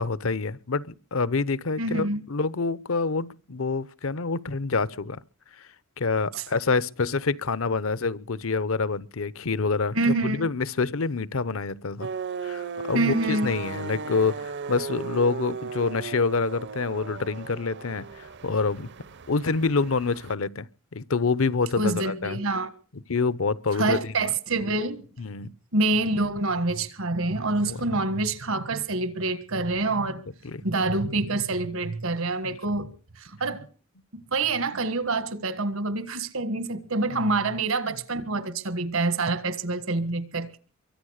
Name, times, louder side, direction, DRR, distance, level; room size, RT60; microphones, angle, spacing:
voice 1, 0.0-5.2 5.6-5.7 6.0-12.1 12.4-18.9 19.3-20.7 20.9-22.4 22.9-24.3 25.2-25.5 27.6-28.0 30.4-30.6 32.4-32.6 37.1-37.5, left 4 dB, 70° left, 0.8 m, -27 dB
voice 2, 1.8-2.2 6.3-6.4 9.9-10.5 12.9-13.5 21.8-22.7 23.7-25.0 25.7-30.2 30.6-32.9 33.2-33.7 34.3-40.6, right 2 dB, 75° right, 1.6 m, -26 dB
sound 1, 12.0-20.3, right 5 dB, 60° right, 0.8 m, -36 dB
23.5 x 9.2 x 6.5 m
head